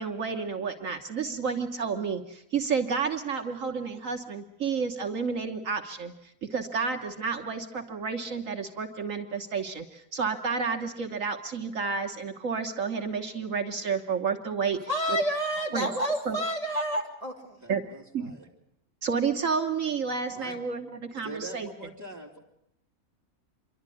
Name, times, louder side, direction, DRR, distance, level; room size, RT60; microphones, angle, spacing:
voice 1, 0.0-6.1 6.5-14.8 15.1-15.2 15.7-15.9 16.2-16.4 17.7-17.8 18.1-18.2 19.0-21.7, right 5 dB, 65° right, 4 dB, 1.6 m, -30 dB
voice 2, 14.9-17.6, equal, 25° left, 0 dB, 2.9 m, -29 dB
voice 3, 17.6-18.5 20.3-20.6 21.2-22.4, right 2 dB, 10° right, -2 dB, 3.3 m, -43 dB
26.5 x 12.0 x 9.8 m, 0.78 s
omnidirectional pair, 1.5 m